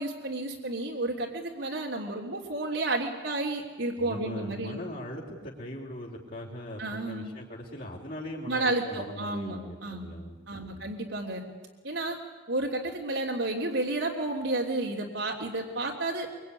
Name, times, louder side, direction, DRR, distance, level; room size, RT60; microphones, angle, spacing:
voice 1, 0.0-4.8 6.8-7.3 8.5-10.1 10.5-11.4 11.8-12.2 12.5-16.3, right 2 dB, 75° right, -2 dB, 3.2 m, -31 dB
voice 2, 4.0-10.9, left 1 dB, 50° left, -3 dB, 3.8 m, -40 dB
24.0 x 24.0 x 9.9 m, 1.3 s
head